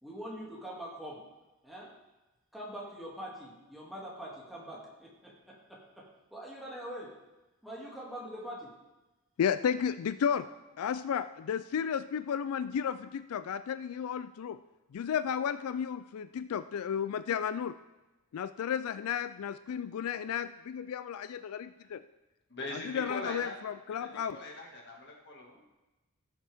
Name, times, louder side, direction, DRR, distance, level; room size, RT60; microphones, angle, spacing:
voice 1, 0.0-1.2 1.6-1.9 2.5-6.0 6.3-7.1 7.6-8.7, equal, ahead, -5 dB, 2.4 m, -43 dB
voice 2, 9.4-10.5 10.8-14.6 14.9-17.8 18.3-22.0 22.7-24.4, left 8 dB, 80° left, 13 dB, 0.3 m, -33 dB
voice 3, 22.5-23.6 24.0-25.7, left 2 dB, 50° left, -1 dB, 1.9 m, -41 dB
16.0 x 7.2 x 3.5 m, 1.1 s
head